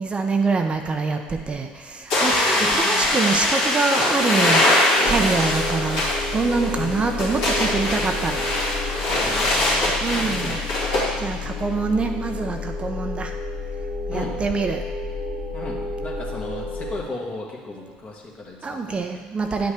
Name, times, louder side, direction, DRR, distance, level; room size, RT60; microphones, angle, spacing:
voice 1, 0.0-8.5 10.0-10.6 10.9-13.3 14.1-14.8 18.6-19.7, right 4 dB, 30° right, 5 dB, 0.7 m, -25 dB
sound 1, 2.1-11.1, left 1 dB, 75° left, 2.4 m, -22 dB
voice 2, 2.5-3.1 6.7-7.0 9.1-10.6 14.1-14.4 15.5-18.8, left 2 dB, 35° left, -1 dB, 1.7 m, -35 dB
sound 2, 5.1-17.0, left 3 dB, 55° left, 1.8 m, -31 dB
9.9 x 5.5 x 3.5 m, 1.4 s
hypercardioid pair, 70°, 4 cm